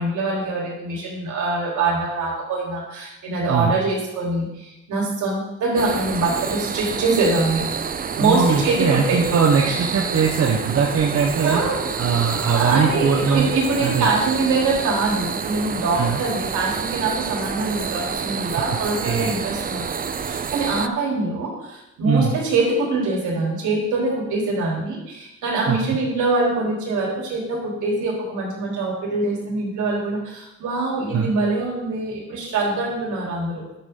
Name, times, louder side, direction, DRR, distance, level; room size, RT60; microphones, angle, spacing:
voice 1, 0.0-7.6 8.2-9.2 11.4-11.9 12.5-33.6, right 3 dB, 75° right, -3 dB, 3.9 m, -24 dB
sound 1, 5.8-20.9, right 6 dB, 30° right, 0.5 m, -28 dB
voice 2, 8.2-11.6 12.0-13.5 13.8-14.1 15.9-16.2 19.0-19.3 22.0-22.3 25.7-25.8 31.1-31.3, right 6 dB, 50° right, -1 dB, 1.2 m, -20 dB
10.5 x 8.4 x 3.9 m, 0.93 s
cardioid pair, 90°, 30 cm